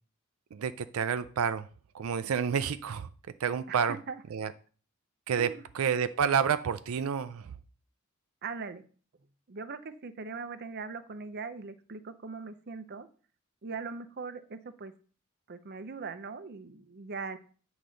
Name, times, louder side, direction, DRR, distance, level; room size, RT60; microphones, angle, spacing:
voice 1, 0.5-1.7 1.9-3.1 3.4-4.0 4.3-4.5 5.3-7.5, right 7 dB, 90° right, 12 dB, 0.4 m, -29 dB
voice 2, 8.4-8.8 9.5-13.1 13.6-14.9 15.5-17.4, right 4 dB, 50° right, 11 dB, 0.6 m, -40 dB
8.6 x 4.0 x 6.3 m, 0.41 s
head